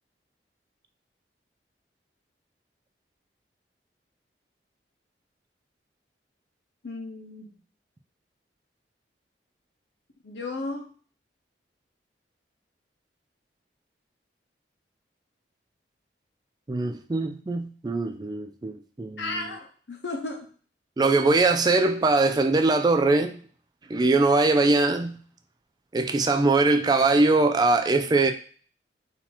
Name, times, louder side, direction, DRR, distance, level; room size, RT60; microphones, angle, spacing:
voice 1, 6.8-7.5 10.2-10.9 19.2-20.5, left 2 dB, 75° left, 0.9 m, -34 dB
voice 2, 16.7-19.4 21.0-23.4 23.9-25.1 25.9-28.3, right 3 dB, 20° right, 0.3 m, -22 dB
3.9 x 2.8 x 4.3 m
head